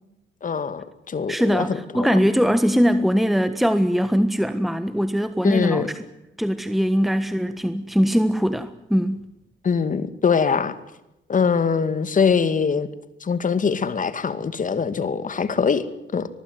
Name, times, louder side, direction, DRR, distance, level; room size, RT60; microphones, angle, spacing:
voice 1, 0.4-1.7 1.9-2.1 5.4-5.9 9.6-10.7 11.3-12.9 13.2-15.9 16.1-16.3, left 6 dB, 40° left, 2.4 m, -22 dB
voice 2, 1.3-5.9 6.4-9.3, equal, ahead, 1.4 m, -21 dB
23.5 x 20.5 x 9.6 m
cardioid pair, 90°, 20 cm